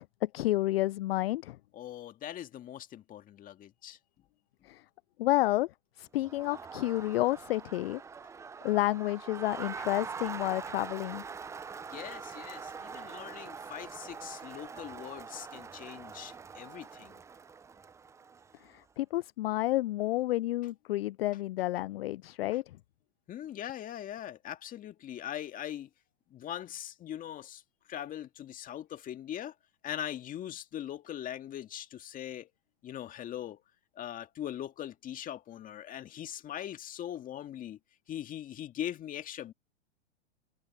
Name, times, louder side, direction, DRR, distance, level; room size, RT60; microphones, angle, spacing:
voice 1, 0.0-1.6 4.6-4.8 5.2-8.0 8.6-11.2 18.6-22.8, left 17 dB, 60° left, 0.4 m, -30 dB
voice 2, 1.7-4.0 11.9-17.2 23.3-25.9 26.3-27.6 27.9-29.5 29.8-32.5 32.8-33.6 34.0-37.8 38.1-39.5, left 11 dB, 25° left, 2.1 m, -41 dB
Crowd, 6.2-18.7, right 5 dB, 10° right, 0.6 m, -44 dB
hypercardioid pair, 125°, 35 cm